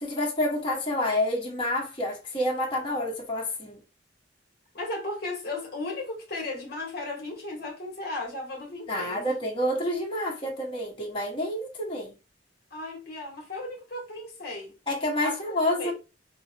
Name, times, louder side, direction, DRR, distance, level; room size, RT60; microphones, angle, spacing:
voice 1, 0.0-3.8 8.9-12.1 14.9-15.9, left 1 dB, 30° left, 1.2 m, -28 dB
voice 2, 4.7-9.3 12.7-14.8 15.2-15.3 15.8-15.9, left 2 dB, 60° left, 1.2 m, -35 dB
4.9 x 2.1 x 2.7 m
head